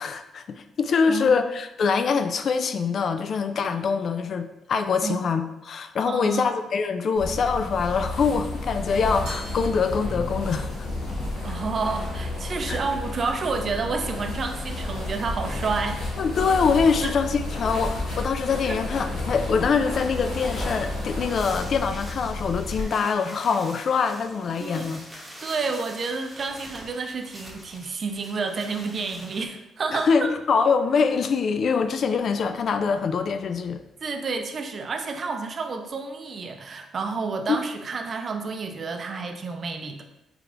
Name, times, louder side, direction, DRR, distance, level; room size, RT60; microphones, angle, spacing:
voice 1, 0.0-10.9 12.7-12.8 16.2-25.1 29.9-33.8 37.5-37.6, left 5 dB, 55° left, 9 dB, 0.3 m, -24 dB
voice 2, 1.1-1.4 5.0-5.2 6.1-6.5 11.4-16.0 17.0-17.1 18.7-18.8 24.6-24.9 25.4-30.3 34.0-40.0, right 4 dB, 45° right, 5 dB, 0.5 m, -30 dB
sound 1, 7.2-22.8, left 2 dB, 80° left, 1.2 m, -31 dB
Glass, 9.3-10.7, right 1 dB, 85° right, 0.8 m, -44 dB
sound 2, 19.9-29.5, right 1 dB, 5° right, 0.9 m, -45 dB
4.9 x 3.2 x 2.5 m, 0.92 s
cardioid pair, 90°, 0 cm